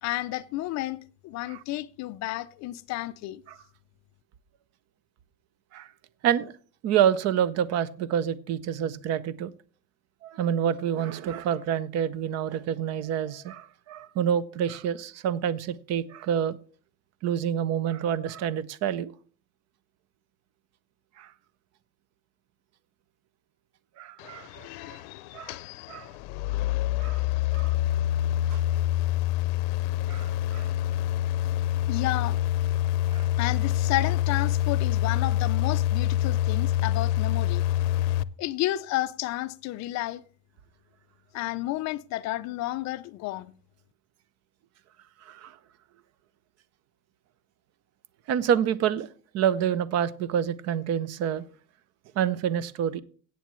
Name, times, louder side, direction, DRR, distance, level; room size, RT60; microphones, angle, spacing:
voice 1, 0.0-3.4 31.9-32.4 33.4-37.6 38.4-40.2 41.3-43.5, left 16 dB, 40° left, 0.4 m, -31 dB
voice 2, 6.8-9.5 10.2-16.6 17.2-19.1 21.2-21.3 24.0-25.0 25.3-25.6 25.9-26.1 27.0-27.2 27.5-27.8 28.5-28.6 30.1-30.7 33.1-33.3 45.2-45.6 48.3-49.1 49.3-51.4 52.1-53.0, right 9 dB, 35° right, 0.5 m, -28 dB
sound 1, 24.2-38.2, left 13 dB, 85° left, 0.6 m, -26 dB
16.5 x 8.4 x 3.1 m
cardioid pair, 165°, 44 cm